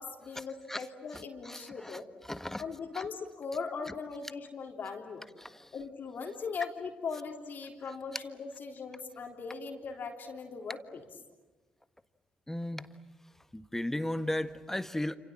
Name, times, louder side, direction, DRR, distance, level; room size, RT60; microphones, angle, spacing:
voice 1, 0.0-2.1 2.6-5.2 5.7-11.0, left 5 dB, 55° left, 2 dB, 3.7 m, -39 dB
voice 2, 1.1-2.6 2.9-3.0 5.4-5.7 12.5-12.9 13.5-15.2, left 1 dB, 10° left, 11 dB, 1.5 m, -36 dB
29.0 x 27.0 x 7.5 m, 1.2 s
hypercardioid pair, 45°, 4 cm